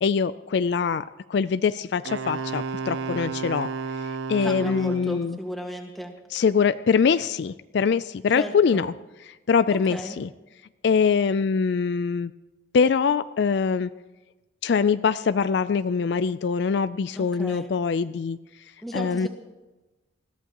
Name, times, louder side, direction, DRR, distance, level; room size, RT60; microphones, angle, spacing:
voice 1, 0.0-5.4 6.3-8.9 9.3-10.3 10.8-12.3 12.7-13.9 14.6-18.4 18.9-19.3, left 5 dB, 60° left, 14 dB, 0.3 m, -23 dB
Wind instrument woodwind instrument, 2.1-5.2, right 5 dB, 70° right, 0.5 m, -32 dB
voice 2, 4.4-6.1 8.3-8.8 9.7-10.2 17.1-17.7 18.8-19.3, equal, ahead, 2 dB, 1.6 m, -34 dB
21.0 x 14.5 x 2.9 m, 1.1 s
head